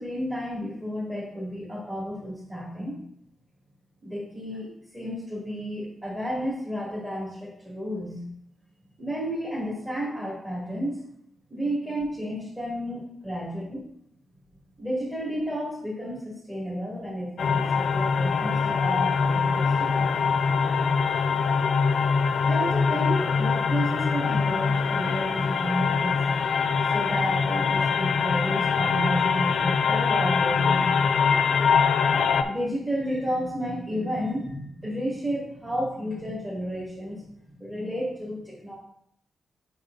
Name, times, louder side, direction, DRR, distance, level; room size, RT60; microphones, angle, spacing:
voice 1, 0.0-3.0 4.0-8.2 9.0-11.1 11.5-13.6 14.8-20.2 22.4-30.9 32.4-37.2 37.6-38.7, equal, 20° right, -8 dB, 2.7 m, -32 dB
sound 1, 17.4-32.4, left 5 dB, 65° left, 0.5 m, -23 dB
8.8 x 5.7 x 2.7 m, 0.69 s
wide cardioid pair, 125°, 0 cm